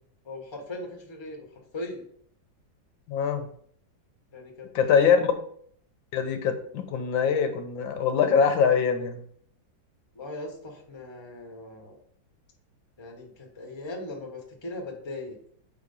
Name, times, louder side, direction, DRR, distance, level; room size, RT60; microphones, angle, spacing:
voice 1, 0.2-1.4 1.7-2.0 4.3-5.1 10.1-12.0 13.0-15.4, left 2 dB, 20° left, 1 dB, 1.0 m, -39 dB
voice 2, 3.1-3.5 4.7-5.3 6.1-9.2, left 6 dB, 85° left, 6 dB, 1.6 m, -23 dB
4.9 x 4.4 x 5.3 m, 0.62 s
omnidirectional pair, 2.1 m